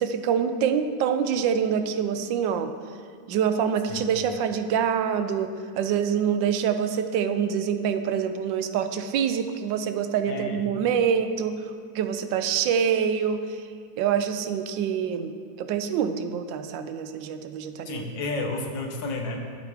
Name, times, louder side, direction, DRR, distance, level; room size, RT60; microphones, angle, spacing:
voice 1, 0.0-2.7 3.3-13.7 14.0-18.1, right 7 dB, 85° right, 9 dB, 1.3 m, -26 dB
voice 2, 10.3-10.6 17.8-19.4, left 2 dB, 80° left, 3 dB, 1.7 m, -31 dB
12.0 x 8.2 x 3.6 m, 2.3 s
omnidirectional pair, 2.0 m